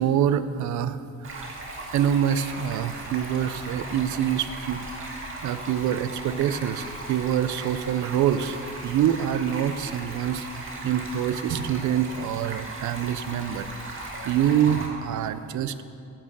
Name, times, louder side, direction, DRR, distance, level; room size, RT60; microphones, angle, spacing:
voice 1, 0.0-1.5 1.9-5.1 5.4-10.5 10.8-14.0 14.2-15.8, right 9 dB, 70° right, 13 dB, 0.6 m, -26 dB
Stream, 1.2-14.9, right 2 dB, 45° right, 2.2 m, -37 dB
8.7 x 8.7 x 6.8 m, 2.5 s
cardioid pair, 90°, 30 cm